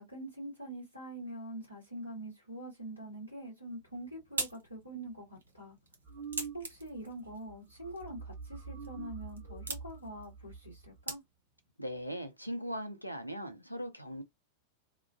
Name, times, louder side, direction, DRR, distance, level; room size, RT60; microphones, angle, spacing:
voice 1, 0.0-5.8 6.5-11.2, right 1 dB, 90° right, 1.3 m, -44 dB
sound 1, 3.7-11.7, right 3 dB, 75° right, 0.8 m, -45 dB
sound 2, 6.0-7.0 7.3-7.6 7.8-11.0, right 5 dB, 50° right, 1.5 m, -45 dB
voice 2, 11.8-14.2, equal, 90° left, 0.5 m, -39 dB
2.9 x 2.4 x 2.4 m
figure-of-eight pair, 90°, 0 cm